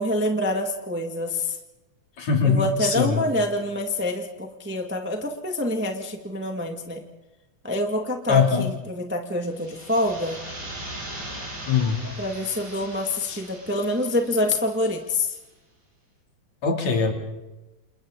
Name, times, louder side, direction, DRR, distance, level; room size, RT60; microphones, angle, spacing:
voice 1, 0.0-1.6 2.4-7.0 7.6-10.4 12.2-15.4, left 1 dB, 5° right, 2 dB, 1.3 m, -26 dB
voice 2, 2.2-3.2 8.3-8.7 11.7-12.1 16.6-17.1, left 5 dB, 65° left, 1 dB, 4.0 m, -21 dB
sound 1, 9.4-15.1, right 1 dB, 80° right, 9.7 m, -39 dB
29.0 x 29.0 x 3.9 m, 1.0 s
omnidirectional pair, 3.4 m